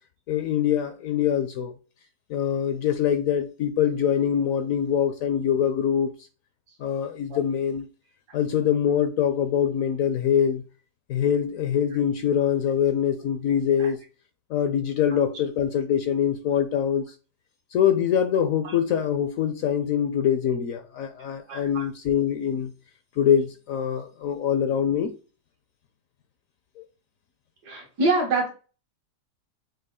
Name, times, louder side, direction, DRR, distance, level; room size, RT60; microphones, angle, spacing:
voice 1, 0.3-1.7 2.3-6.1 6.8-7.9 8.3-10.6 11.1-14.0 14.5-17.0 17.7-22.7 23.2-25.1 26.8-26.9, left 9 dB, 70° left, 0.8 m, -24 dB
voice 2, 21.5-21.9 27.7-28.5, right 2 dB, 75° right, 1.7 m, -25 dB
6.3 x 2.3 x 3.6 m
omnidirectional pair, 1.8 m